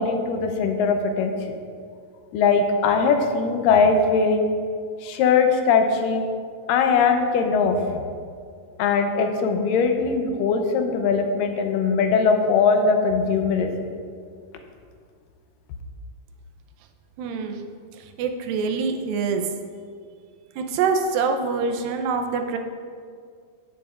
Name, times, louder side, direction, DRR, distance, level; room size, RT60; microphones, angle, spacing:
voice 1, 0.0-1.6 2.3-4.5 5.0-6.2 6.7-8.0 8.8-13.7, left 5 dB, 80° left, 5 dB, 2.2 m, -20 dB
voice 2, 17.2-17.6 17.9-19.5 20.6-22.6, right 5 dB, 85° right, 5 dB, 2.4 m, -25 dB
16.0 x 7.2 x 2.4 m, 2.1 s
omnidirectional pair, 4.1 m